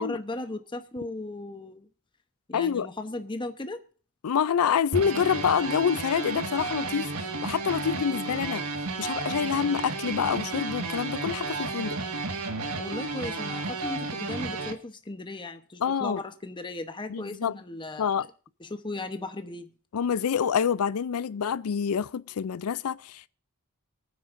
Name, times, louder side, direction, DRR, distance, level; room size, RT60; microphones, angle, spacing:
voice 1, 0.0-1.9 2.5-3.8 12.8-18.1 18.6-19.7, left 2 dB, 20° left, 0.9 m, -36 dB
voice 2, 2.5-2.9 4.2-7.1 7.4-8.6 9.0-12.0 15.8-16.2 17.1-17.5 18.0-18.3 19.9-23.3, left 7 dB, 80° left, 0.4 m, -27 dB
sound 1, 4.9-14.7, right 3 dB, 90° right, 1.7 m, -32 dB
24.5 x 9.5 x 2.6 m
head